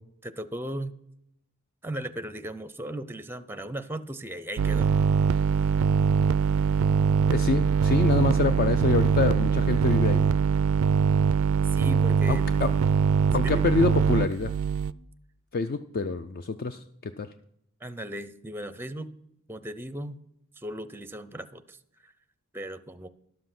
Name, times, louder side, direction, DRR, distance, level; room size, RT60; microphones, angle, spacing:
voice 1, 0.2-0.9 1.8-5.0 11.7-12.4 13.4-13.6 17.8-19.1 19.5-20.2 20.6-21.8 22.0-22.1 22.5-23.1, right 1 dB, 10° right, 12 dB, 0.5 m, -37 dB
sound 1, 4.6-14.9, right 6 dB, 70° right, 0.3 m, -23 dB
voice 2, 7.3-10.3 12.3-12.7 13.3-14.5 15.5-17.3, left 4 dB, 45° left, 10 dB, 0.4 m, -26 dB
12.0 x 7.4 x 5.9 m, 0.76 s
head